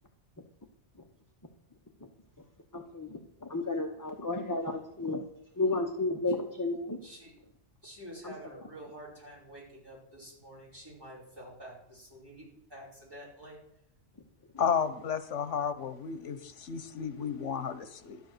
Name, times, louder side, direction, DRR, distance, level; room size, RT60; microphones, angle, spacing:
voice 1, 2.7-5.2 5.5-7.0 8.2-8.6, left 2 dB, 15° left, 4 dB, 1.0 m, -33 dB
voice 2, 7.8-12.4 12.7-13.6, right 1 dB, 20° right, -5 dB, 6.2 m, -48 dB
voice 3, 14.6-18.2, left 7 dB, 85° left, 12 dB, 1.3 m, -32 dB
12.5 x 10.0 x 6.6 m, 0.80 s
omnidirectional pair, 1.2 m